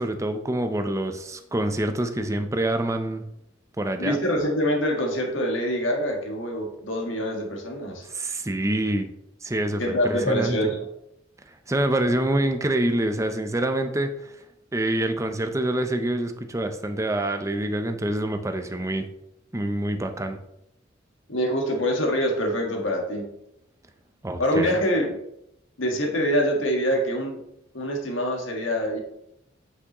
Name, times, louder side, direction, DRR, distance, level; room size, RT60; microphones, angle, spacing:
voice 1, 0.0-3.2 3.8-4.2 8.1-9.1 9.4-10.6 11.7-14.3 14.7-19.1 19.5-20.4 24.2-24.7, right 1 dB, 15° right, 7 dB, 0.6 m, -26 dB
voice 2, 4.0-8.0 9.8-10.8 21.3-23.3 24.4-25.2 25.8-27.4 27.7-29.0, equal, 90° left, 1 dB, 1.5 m, -25 dB
8.5 x 6.0 x 3.0 m, 0.80 s
head